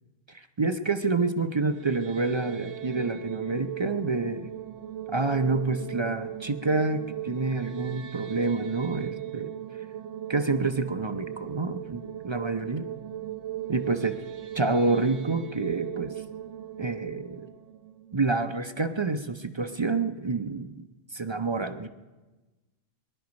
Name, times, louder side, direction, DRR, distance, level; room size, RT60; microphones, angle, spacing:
voice 1, 0.3-4.5 5.1-9.5 10.3-12.9 13.7-14.2 14.5-16.1 16.8-17.5 18.1-20.8 21.1-21.9, right 3 dB, 35° right, 8 dB, 0.4 m, -28 dB
sound 1, 1.6-18.7, right 12 dB, 80° right, 1.1 m, -38 dB
21.5 x 12.0 x 5.2 m, 1.2 s
omnidirectional pair, 1.3 m